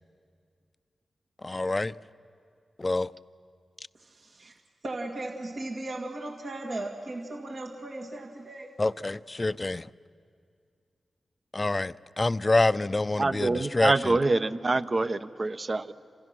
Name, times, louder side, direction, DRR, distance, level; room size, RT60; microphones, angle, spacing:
voice 1, 1.4-1.9 2.8-3.1 8.8-9.9 11.5-13.9, left 2 dB, 35° left, 0.6 m, -26 dB
voice 2, 4.0-4.5 4.8-8.7, right 2 dB, 60° right, 2.2 m, -37 dB
voice 3, 13.2-15.9, right 3 dB, 45° right, 1.0 m, -26 dB
29.0 x 27.0 x 6.2 m
cardioid pair, 45°, 0 cm